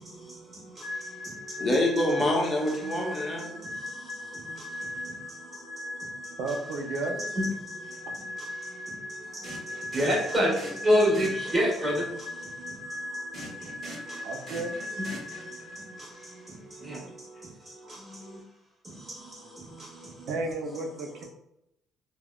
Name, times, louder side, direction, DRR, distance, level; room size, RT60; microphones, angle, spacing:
voice 1, 0.0-1.7 2.9-6.6 7.1-18.4 18.8-20.3 20.7-21.2, equal, 25° right, 1.5 m, -33 dB
sound 1, 0.8-16.4, left 2 dB, 80° left, 0.3 m, -39 dB
voice 2, 1.6-3.6, left 1 dB, 30° left, 0.7 m, -26 dB
voice 3, 6.4-7.2 14.2-14.8 20.3-21.2, right 2 dB, 80° right, 0.5 m, -32 dB
sound 2, 7.8-8.0 9.4-11.9 13.3-15.9, right 1 dB, 40° right, 1.1 m, -44 dB
3.4 x 2.3 x 2.3 m
cardioid pair, 115°, 0 cm